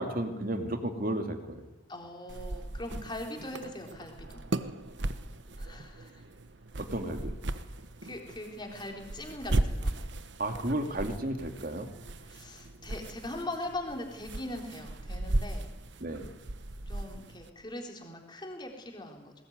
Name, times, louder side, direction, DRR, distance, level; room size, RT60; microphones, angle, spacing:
voice 1, 0.0-1.6 6.8-7.3 10.4-11.9 16.0-16.3, right 1 dB, 50° right, 6 dB, 2.5 m, -33 dB
voice 2, 1.9-4.4 5.6-6.2 8.0-10.0 12.2-15.7 16.9-19.3, left 1 dB, 25° left, 2 dB, 3.7 m, -41 dB
sound 1, 2.3-17.5, right 1 dB, 75° right, 1.1 m, -37 dB
20.5 x 19.5 x 9.5 m, 1.1 s
head